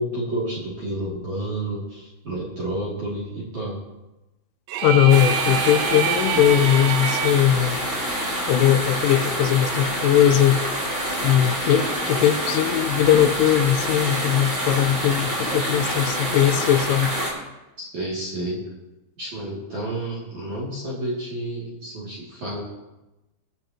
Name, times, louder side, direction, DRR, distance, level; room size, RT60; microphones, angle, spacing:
voice 1, 0.0-3.8 17.8-18.6 19.2-22.6, right 1 dB, 45° right, -7 dB, 3.3 m, -30 dB
sound 1, 4.7-7.5, right 10 dB, 80° right, 2.9 m, -26 dB
voice 2, 4.8-7.8 8.5-10.6 11.2-17.1, left 11 dB, 85° left, 10 dB, 3.1 m, -19 dB
sound 2, 5.1-17.3, right 1 dB, 20° right, 4.2 m, -27 dB
24.0 x 10.5 x 2.9 m, 1.0 s
omnidirectional pair, 5.6 m